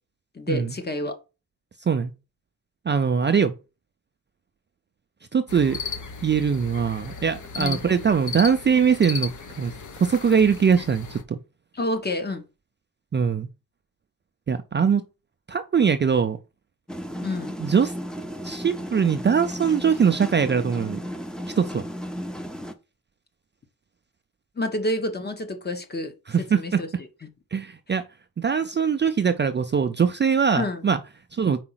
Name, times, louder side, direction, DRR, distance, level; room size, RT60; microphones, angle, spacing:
voice 1, 0.3-1.1 7.6-7.8 11.7-12.4 17.2-17.5 24.6-26.1 26.5-26.9 27.2-27.3 30.6-30.8, left 1 dB, 25° left, 1.2 m, -28 dB
voice 2, 2.9-3.5 5.3-5.8 6.2-9.7 10.0-11.4 13.1-13.5 14.5-15.0 15.5-16.4 17.6-17.9 18.4-21.0 21.6-21.8 26.3-26.8 27.5-28.0 28.4-31.0 31.3-31.6, right 6 dB, 30° right, 0.5 m, -22 dB
sound 1, 5.5-11.2, left 5 dB, 55° left, 1.2 m, -36 dB
sound 2, 16.9-22.7, equal, ahead, 0.7 m, -34 dB
4.9 x 4.8 x 5.7 m
wide cardioid pair, 150°, 36 cm